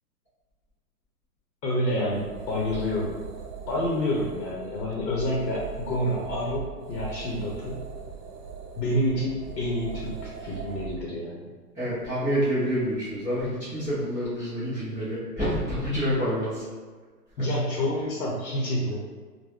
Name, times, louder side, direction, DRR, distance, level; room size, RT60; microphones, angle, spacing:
voice 1, 1.6-3.2 3.7-7.9 8.8-11.5 17.4-19.0, left 1 dB, 75° left, -3 dB, 0.8 m, -28 dB
sound 1, 1.9-11.1, right 6 dB, 80° right, 0.6 m, -40 dB
voice 2, 11.7-16.6, equal, 5° right, -24 dB, 0.4 m, -27 dB
3.2 x 2.1 x 2.3 m, 1.5 s
hypercardioid pair, 135°, 49 cm